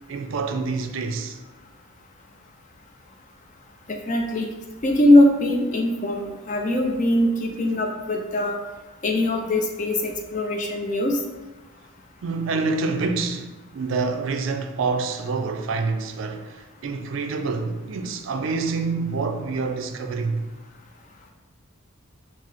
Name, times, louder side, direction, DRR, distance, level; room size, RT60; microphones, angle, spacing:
voice 1, 0.1-1.4 12.2-20.4, right 4 dB, 60° right, 0.4 m, -27 dB
voice 2, 4.1-4.5 4.8-8.6 9.0-11.2, left 1 dB, 35° left, 0.4 m, -21 dB
4.9 x 2.0 x 4.1 m
head